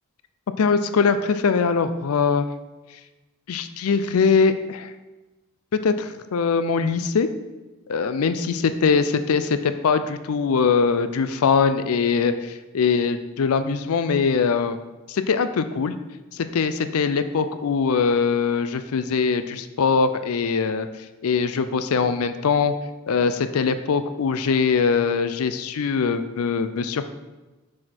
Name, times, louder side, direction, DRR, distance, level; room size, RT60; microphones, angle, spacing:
voice 1, 0.6-2.5 3.5-4.9 5.7-7.3 7.9-14.8 15.1-15.9 16.3-20.9 21.2-22.7 23.1-27.1, left 5 dB, 70° left, 11 dB, 0.4 m, -22 dB
6.5 x 6.3 x 4.3 m, 1.1 s
head